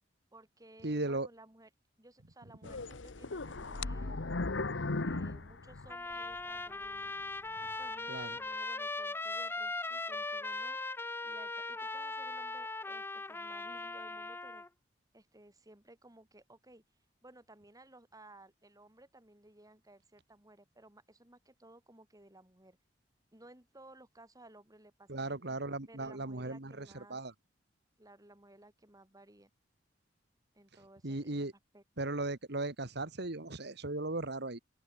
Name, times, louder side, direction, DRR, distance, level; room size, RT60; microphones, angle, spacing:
voice 1, 0.3-1.7 2.0-4.4 5.0-7.1 7.6-10.8 11.2-14.6 15.1-16.8 17.2-22.8 23.3-25.4 25.9-27.2 28.0-29.5 30.5-31.4 31.7-31.8, right 1 dB, 20° right, 4.8 m, -58 dB
voice 2, 0.8-1.3 8.1-8.4 25.1-27.3 31.0-31.5 32.0-34.6, right 2 dB, 65° right, 1.9 m, -37 dB
sound 1, 2.6-6.4 6.9-7.0 7.6-7.7, left 3 dB, 85° left, 1.2 m, -37 dB
Trumpet, 5.9-14.7, left 2 dB, 10° left, 0.6 m, -39 dB
open air
head